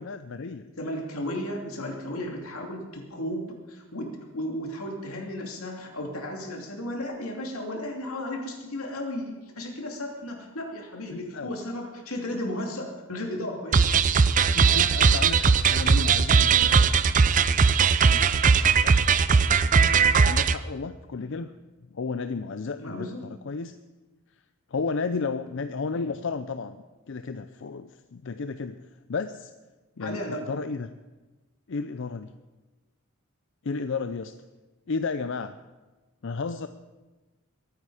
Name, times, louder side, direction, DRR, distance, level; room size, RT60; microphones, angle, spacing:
voice 1, 0.0-0.7 11.1-11.5 14.5-17.0 18.7-19.2 20.2-21.5 21.9-23.7 24.7-28.8 29.1-29.5 30.0-30.9 31.7-32.3 33.6-34.3 34.9-35.5 36.2-36.7, left 4 dB, 60° left, 10 dB, 0.5 m, -33 dB
voice 2, 0.8-13.9 18.1-18.3 22.8-23.2 30.0-30.5, left 1 dB, 85° left, 1 dB, 2.8 m, -34 dB
sound 1, 13.7-20.6, right 5 dB, 40° right, 0.5 m, -19 dB
22.5 x 9.2 x 4.9 m, 1.2 s
head